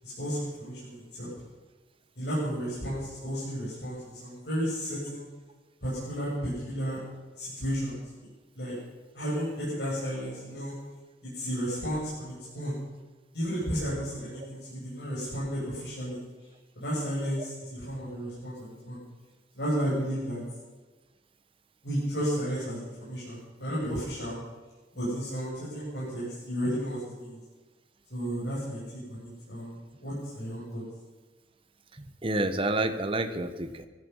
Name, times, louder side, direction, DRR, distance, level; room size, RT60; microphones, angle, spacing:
voice 1, 0.0-1.3 2.2-5.2 5.8-7.0 7.4-8.0 8.6-8.7 9.1-10.7 11.2-12.8 13.3-16.2 16.8-19.0 19.5-20.4 21.8-24.4 24.9-27.4 28.1-28.8 29.1-30.8, equal, 65° left, -8 dB, 7.3 m, -33 dB
voice 2, 32.0-33.9, right 2 dB, 30° right, 8 dB, 1.3 m, -29 dB
19.5 x 13.0 x 5.6 m, 1.3 s
head